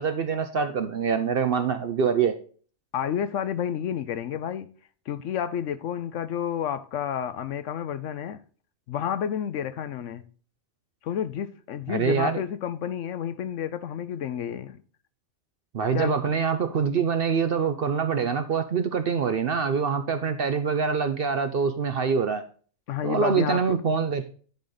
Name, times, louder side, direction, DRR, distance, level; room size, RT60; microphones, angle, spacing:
voice 1, 0.0-2.4 11.9-12.4 15.7-22.4 23.0-24.2, right 6 dB, 55° right, 0.7 m, -25 dB
voice 2, 2.9-4.7 5.1-8.4 8.9-10.2 11.0-14.8 15.9-16.2 22.9-23.6, left 9 dB, 70° left, 0.9 m, -30 dB
10.5 x 5.1 x 3.9 m
omnidirectional pair, 1.4 m